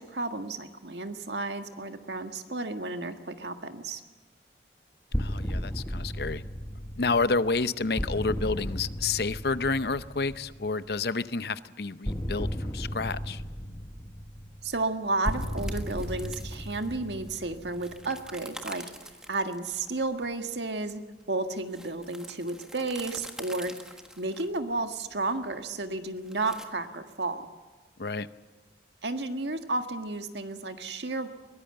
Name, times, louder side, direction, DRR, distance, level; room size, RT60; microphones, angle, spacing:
voice 1, 0.0-4.0 14.6-18.8 19.3-21.0 21.3-23.7 24.2-27.5 29.0-31.3, right 2 dB, 80° right, 7 dB, 1.7 m, -32 dB
voice 2, 5.1-6.4 7.0-13.4 28.0-28.3, left 4 dB, 60° left, 14 dB, 0.7 m, -29 dB
sound 1, 5.1-10.9 12.0-18.3, equal, 15° left, 1.1 m, -35 dB
sound 2, 15.2-26.6, right 1 dB, 5° right, 1.5 m, -47 dB
22.5 x 18.5 x 7.8 m, 1.3 s
head